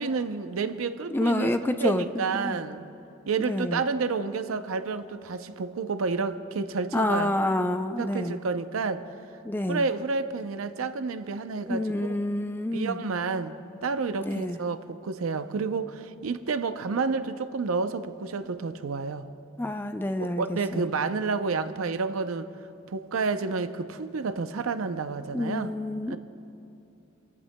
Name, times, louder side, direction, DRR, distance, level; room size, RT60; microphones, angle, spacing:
voice 1, 0.0-2.9 3.3-7.3 8.0-9.0 9.7-12.2 12.7-19.3 20.2-22.5 22.9-25.7 26.1-26.2, right 4 dB, 85° right, 11 dB, 0.6 m, -30 dB
voice 2, 1.1-2.6 3.4-3.8 6.9-8.4 9.4-9.8 11.7-13.0 14.2-14.6 19.6-20.9 25.3-26.2, left 1 dB, 10° left, 8 dB, 0.4 m, -28 dB
25.5 x 14.5 x 2.2 m, 2.7 s
head